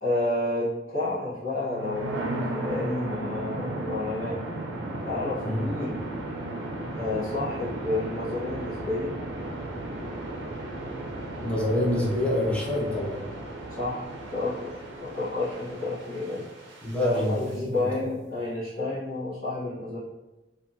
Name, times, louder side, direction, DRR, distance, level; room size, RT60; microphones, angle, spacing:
voice 1, 0.0-4.4 5.0-6.0 7.0-9.1 13.7-14.1 14.3-16.5 17.0-20.0, left 2 dB, 60° left, -12 dB, 1.0 m, -30 dB
sound 1, 1.6-17.5, right 1 dB, 70° right, 0.5 m, -35 dB
voice 2, 11.4-13.2 16.8-17.7, left 1 dB, 5° left, -5 dB, 0.7 m, -26 dB
2.7 x 2.4 x 2.6 m, 1.1 s
head